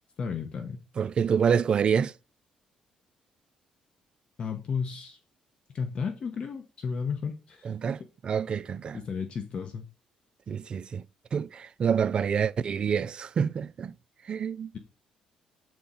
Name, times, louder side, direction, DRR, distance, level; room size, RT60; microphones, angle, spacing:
voice 1, 0.2-0.8 4.4-5.2 5.7-7.7 8.9-9.8, left 6 dB, 45° left, 1.0 m, -33 dB
voice 2, 1.0-2.1 7.6-9.0 10.5-11.0 11.3-13.9 14.3-14.7, right 7 dB, 40° right, 0.3 m, -27 dB
7.7 x 4.2 x 3.8 m
cardioid pair, 105°, 2 cm